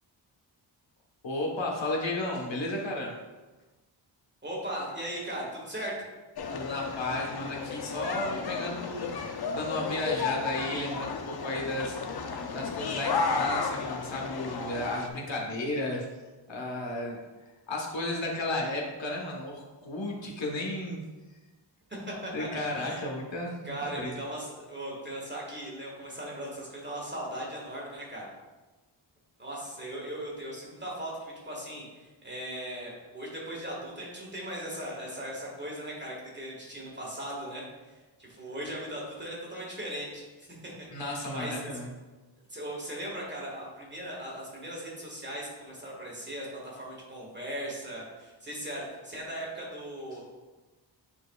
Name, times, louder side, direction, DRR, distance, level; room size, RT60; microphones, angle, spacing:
voice 1, 1.2-3.1 6.5-9.2 9.5-12.0 12.5-16.1 16.5-17.2 17.7-21.0 22.3-24.2 40.9-41.9, left 1 dB, 70° left, -1 dB, 1.3 m, -33 dB
voice 2, 4.4-6.1 21.9-23.0 23.6-28.3 29.4-41.8 42.5-50.4, right 1 dB, 25° right, -3 dB, 1.7 m, -38 dB
sound 1, 6.4-15.1, left 4 dB, 55° left, 0.6 m, -33 dB
9.1 x 4.5 x 2.4 m, 1.2 s
wide cardioid pair, 120°, 46 cm